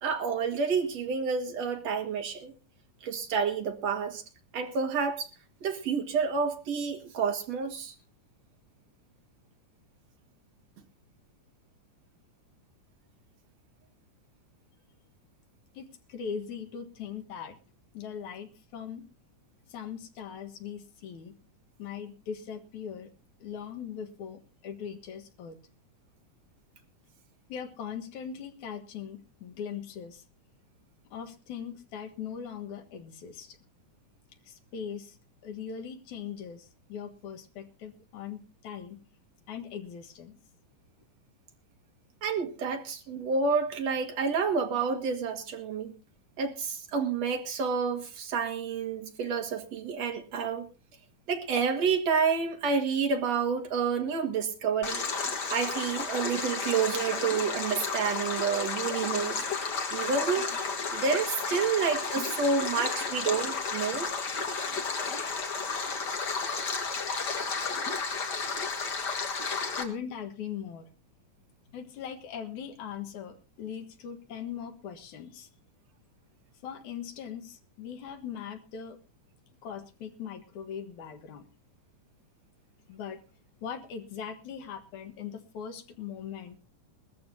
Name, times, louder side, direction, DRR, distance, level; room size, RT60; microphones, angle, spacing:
voice 1, 0.0-2.5 3.0-4.2 4.5-5.3 5.6-7.9 42.2-45.9 46.4-50.7 51.3-55.0 55.5-59.5 59.9-60.5 60.9-64.1, right 5 dB, 60° right, 2.9 m, -29 dB
voice 2, 15.7-17.6 17.9-19.0 19.7-21.3 21.8-23.1 23.4-25.6 27.5-30.2 31.1-33.6 34.5-35.2 35.4-39.0 39.5-40.4 69.8-70.9 71.7-75.5 76.6-79.0 79.6-81.5 82.9-83.2 83.6-86.6, left 7 dB, 70° left, 2.8 m, -40 dB
Stream, 54.8-69.8, left 4 dB, 40° left, 1.9 m, -32 dB
21.0 x 14.0 x 2.8 m
omnidirectional pair, 3.6 m